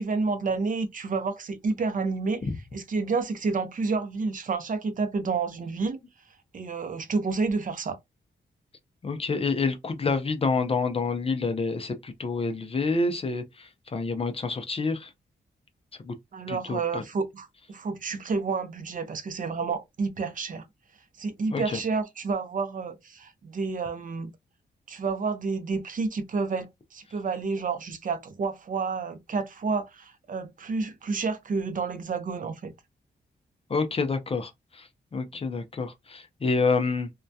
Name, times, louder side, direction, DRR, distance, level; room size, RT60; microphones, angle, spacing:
voice 1, 0.0-2.4 2.7-6.0 6.5-8.0 16.3-20.6 21.2-24.3 24.9-32.7, right 4 dB, 45° right, 0.5 m, -30 dB
voice 2, 9.0-15.1 16.0-16.1 16.5-17.0 21.5-21.8 33.7-37.1, left 4 dB, 30° left, 0.4 m, -28 dB
2.2 x 2.1 x 2.6 m
cardioid pair, 90°, 18 cm